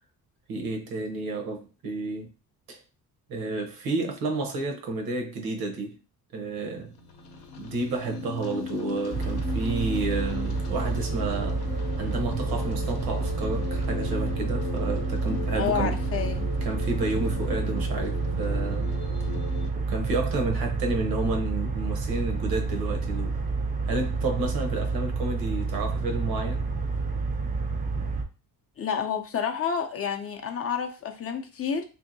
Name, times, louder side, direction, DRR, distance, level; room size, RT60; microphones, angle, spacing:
voice 1, 0.5-2.3 2.7-2.8 3.3-6.0 6.3-6.9 7.6-11.6 12.0-15.9 16.6-19.0 19.7-23.4 23.8-26.7, right 3 dB, 70° right, 0.8 m, -31 dB
sound 1, 6.9-19.7, left 6 dB, 80° left, 0.7 m, -37 dB
sound 2, 9.1-28.2, right 4 dB, 25° right, 0.4 m, -29 dB
voice 2, 15.6-16.5 28.8-31.8, left 7 dB, 40° left, 0.5 m, -29 dB
2.7 x 2.5 x 2.6 m
cardioid pair, 110°, 37 cm